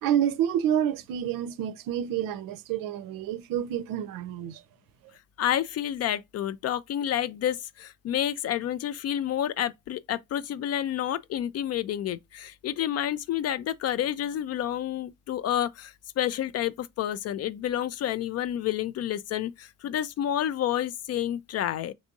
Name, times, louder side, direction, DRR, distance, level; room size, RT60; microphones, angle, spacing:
voice 1, 0.0-4.6, right 10 dB, 55° right, 0.6 m, -28 dB
voice 2, 5.4-21.9, left 11 dB, 40° left, 0.4 m, -29 dB
5.2 x 3.4 x 2.6 m
hypercardioid pair, 50°, 40 cm